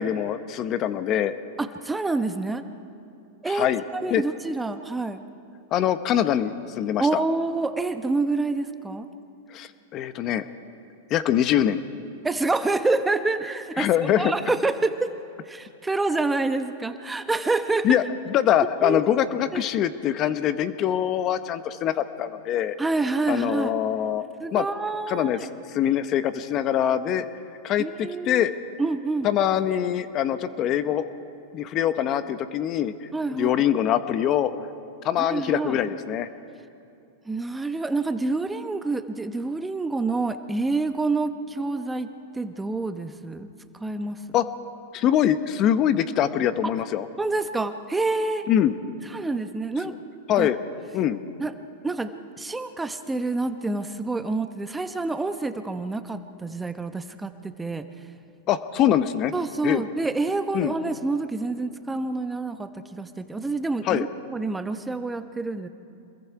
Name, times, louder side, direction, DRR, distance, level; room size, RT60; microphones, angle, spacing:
voice 1, 0.0-1.3 3.5-3.8 4.1-4.2 5.7-7.1 9.5-10.4 11.1-11.8 13.8-14.3 17.8-18.0 18.3-22.7 23.3-24.2 24.5-24.6 25.1-25.4 25.7-27.2 27.6-28.5 29.2-31.0 31.5-34.5 35.0-36.3 44.3-44.4 44.9-47.1 48.5-48.8 50.3-50.6 50.9-51.2 58.5-59.3 59.6-59.8 60.5-60.7 63.8-64.0, left 10 dB, 40° left, 12 dB, 0.9 m, -23 dB
voice 2, 1.6-2.6 3.4-5.2 7.0-9.1 12.2-13.9 14.2-15.1 15.4-18.0 18.8-19.0 19.5-19.6 22.8-23.7 24.4-25.5 27.8-28.5 28.8-29.3 33.1-33.6 35.2-35.8 37.3-43.5 43.8-44.2 47.2-48.5 49.1-49.9 50.4-50.5 51.4-51.5 51.8-57.9 59.3-65.7, right 3 dB, 10° right, 9 dB, 0.9 m, -27 dB
26.5 x 21.5 x 4.7 m, 2.6 s
hypercardioid pair, 120°, 0 cm